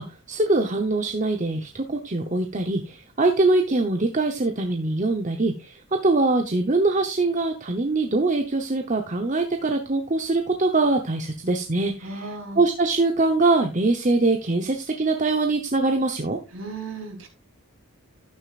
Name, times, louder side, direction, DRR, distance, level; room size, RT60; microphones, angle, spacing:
voice 1, 0.0-16.4, right 2 dB, 35° right, 4 dB, 0.9 m, -23 dB
voice 2, 12.0-12.6 16.5-17.3, right 3 dB, 65° right, 3 dB, 3.4 m, -35 dB
12.0 x 9.2 x 2.5 m, 0.28 s
head